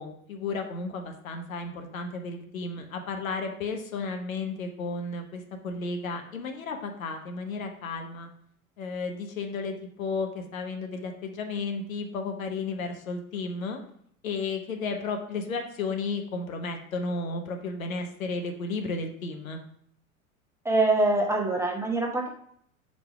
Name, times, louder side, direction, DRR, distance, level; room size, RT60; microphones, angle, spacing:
voice 1, 0.0-8.3 8.8-13.8 14.2-19.6, left 3 dB, 70° left, 5 dB, 1.0 m, -33 dB
voice 2, 20.6-22.3, right 2 dB, 5° right, 0 dB, 0.8 m, -24 dB
5.2 x 4.4 x 4.6 m, 0.66 s
figure-of-eight pair, 85°, 42 cm